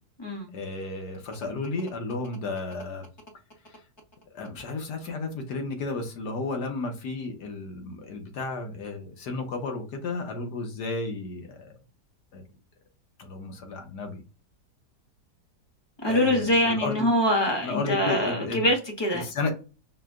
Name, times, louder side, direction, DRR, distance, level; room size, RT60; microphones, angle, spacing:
voice 1, 0.5-3.1 3.7-3.8 4.3-11.7 12.3-12.4 13.2-14.2 16.1-17.1 17.6-18.7 19.1-19.5, left 3 dB, 75° left, 1.5 m, -33 dB
voice 2, 16.0-19.3, left 1 dB, 20° left, 0.7 m, -24 dB
4.8 x 2.2 x 3.6 m
omnidirectional pair, 1.8 m